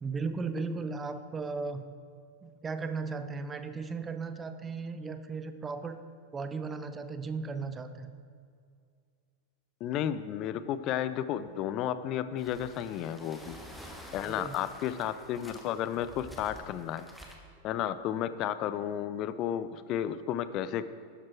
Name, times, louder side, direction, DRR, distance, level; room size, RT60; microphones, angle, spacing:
voice 1, 0.0-1.8 2.4-6.0 6.3-8.1 14.3-14.6, right 4 dB, 15° right, 10 dB, 0.6 m, -36 dB
voice 2, 9.8-13.6 14.1-17.0 17.6-20.9, left 10 dB, 35° left, 13 dB, 0.5 m, -32 dB
sound 1, 12.4-17.4, equal, ahead, 1.3 m, -49 dB
12.0 x 7.5 x 4.5 m, 2.2 s
figure-of-eight pair, 90°, 0 cm